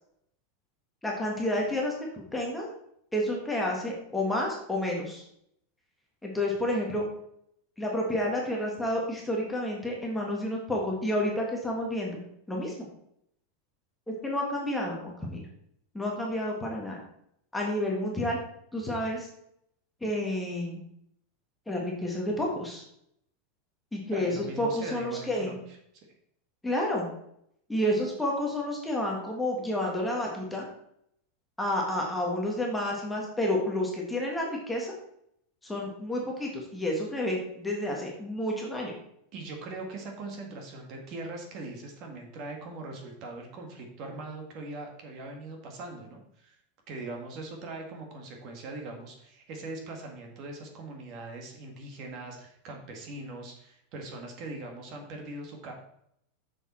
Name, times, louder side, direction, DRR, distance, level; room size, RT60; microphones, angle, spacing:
voice 1, 1.0-2.7 3.1-5.2 6.2-7.0 7.8-12.2 12.5-12.9 14.2-15.4 15.9-17.0 17.5-18.4 18.7-19.3 20.0-20.8 21.7-22.8 23.9-25.6 26.6-27.1 27.7-30.6 31.6-34.9 35.6-38.9, left 1 dB, 5° left, -1 dB, 1.5 m, -30 dB
voice 2, 24.1-25.8 39.3-46.6 46.9-55.7, right 2 dB, 35° right, 2 dB, 1.7 m, -41 dB
6.8 x 6.6 x 4.3 m, 0.72 s
supercardioid pair, 165°, 0 cm